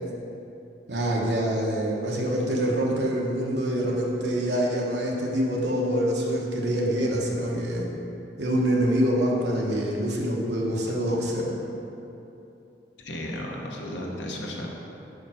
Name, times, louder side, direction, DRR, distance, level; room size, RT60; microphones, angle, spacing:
voice 1, 0.9-7.9 8.4-11.5, equal, 65° right, -3 dB, 1.1 m, -25 dB
voice 2, 13.0-14.7, left 1 dB, 80° left, -1 dB, 1.0 m, -34 dB
5.5 x 5.0 x 5.7 m, 2.9 s
head